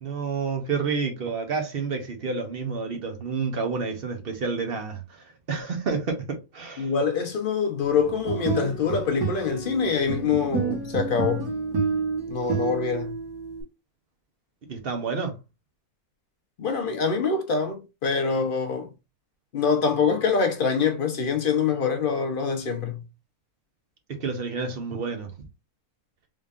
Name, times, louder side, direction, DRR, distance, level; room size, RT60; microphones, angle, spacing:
voice 1, 0.0-6.9 14.7-15.4 24.1-25.3, right 5 dB, 45° right, 0.9 m, -29 dB
voice 2, 6.8-11.5 12.3-13.1 16.6-18.9 19.5-23.0, left 5 dB, 50° left, 0.6 m, -25 dB
sound 1, 8.1-13.6, right 5 dB, 75° right, 1.7 m, -29 dB
3.6 x 3.4 x 2.4 m
omnidirectional pair, 1.6 m